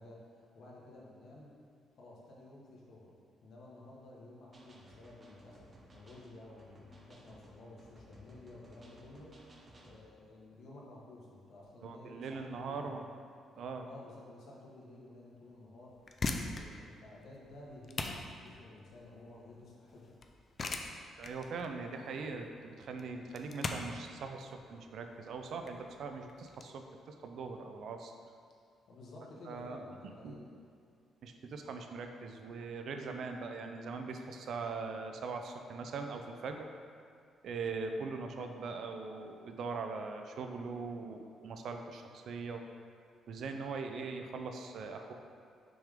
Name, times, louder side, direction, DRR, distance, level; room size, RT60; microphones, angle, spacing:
voice 1, 0.0-1.5 2.0-3.1 3.4-9.4 9.8-13.0 13.8-16.0 16.3-20.2 28.9-30.4, left 2 dB, 65° left, -4 dB, 1.4 m, -53 dB
sound 1, 4.5-10.0, right 1 dB, 35° right, 0.9 m, -59 dB
voice 2, 11.8-13.0 13.6-13.9 21.2-28.1 29.5-29.8 30.2-30.4 31.2-36.7 37.4-42.6 43.3-45.1, right 4 dB, 65° right, 5 dB, 0.5 m, -41 dB
sound 2, 15.9-26.7, left 3 dB, 40° left, 0.5 m, -41 dB
6.0 x 3.6 x 5.0 m, 2.2 s
cardioid pair, 90°, 0 cm